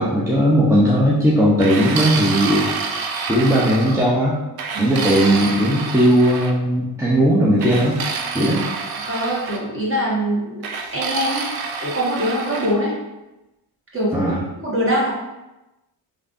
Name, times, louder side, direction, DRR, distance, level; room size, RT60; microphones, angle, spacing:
voice 1, 0.0-2.7 3.3-4.4 4.8-8.0 8.3-8.6 14.1-14.4, equal, 5° right, -7 dB, 0.6 m, -17 dB
sound 1, 1.6-4.1 4.6-6.5 7.6-9.6 10.6-12.8, right 5 dB, 55° right, 0.5 m, -27 dB
voice 2, 9.1-10.7 10.9-11.5 11.8-13.0 13.9-14.1 14.6-15.1, equal, 30° right, -6 dB, 1.4 m, -22 dB
3.2 x 2.5 x 2.6 m, 1.0 s
cardioid pair, 70°, 45 cm